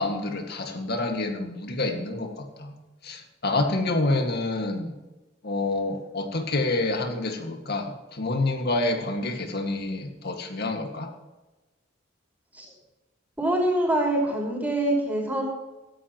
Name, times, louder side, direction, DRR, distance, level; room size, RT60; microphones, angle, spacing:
voice 1, 0.0-2.8 3.0-5.0 5.4-11.1, left 2 dB, 55° left, 4 dB, 2.0 m, -28 dB
voice 2, 13.4-15.4, right 1 dB, 10° right, -2 dB, 5.2 m, -24 dB
16.5 x 14.5 x 3.1 m, 1.1 s
head